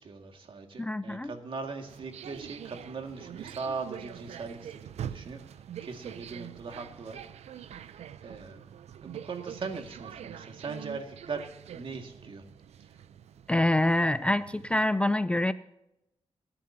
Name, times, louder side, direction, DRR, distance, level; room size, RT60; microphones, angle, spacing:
voice 1, 0.0-5.4 5.8-7.2 7.5-8.0 8.2-8.6 9.0-12.4 12.9-13.0, right 4 dB, 55° right, 4 dB, 2.0 m, -40 dB
voice 2, 0.8-1.3 13.5-15.5, left 1 dB, 10° left, 14 dB, 0.3 m, -26 dB
sound 1, 1.9-14.9, right 9 dB, 90° right, 0.6 m, -44 dB
22.5 x 11.0 x 2.8 m, 0.87 s
wide cardioid pair, 125°, 11 cm